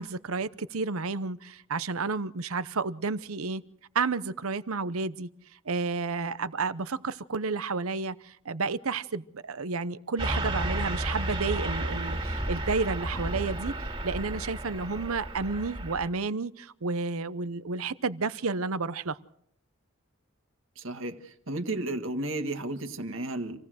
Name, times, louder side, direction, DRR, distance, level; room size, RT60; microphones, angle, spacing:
voice 1, 0.0-3.6 3.9-5.3 5.7-13.7 14.0-19.2, right 4 dB, 80° right, 16 dB, 0.8 m, -31 dB
Car passing by / Truck, 10.2-16.1, right 1 dB, 25° right, 2.9 m, -32 dB
voice 2, 20.8-23.6, right 2 dB, 65° right, 7 dB, 1.8 m, -33 dB
27.0 x 17.5 x 6.3 m, 0.68 s
head